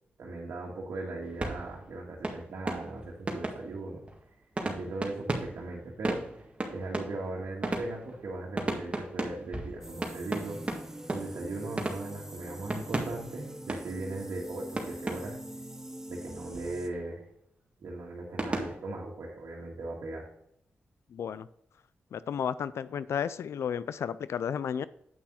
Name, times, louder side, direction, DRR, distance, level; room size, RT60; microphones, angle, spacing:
voice 1, 0.2-4.0 4.6-6.2 6.7-10.6 11.1-15.4 16.1-17.2 17.8-20.3, right 2 dB, 80° right, -3 dB, 1.7 m, -38 dB
sound 1, 1.2-14.4 14.8-15.7 16.2-17.1 18.4-18.8, right 2 dB, 25° right, 1.8 m, -37 dB
sound 2, 9.8-16.9, right 1 dB, 10° right, 1.0 m, -44 dB
voice 2, 21.1-21.5 22.1-24.8, left 8 dB, 75° left, 16 dB, 0.3 m, -33 dB
8.6 x 5.8 x 3.9 m, 0.74 s
cardioid pair, 65°, 5 cm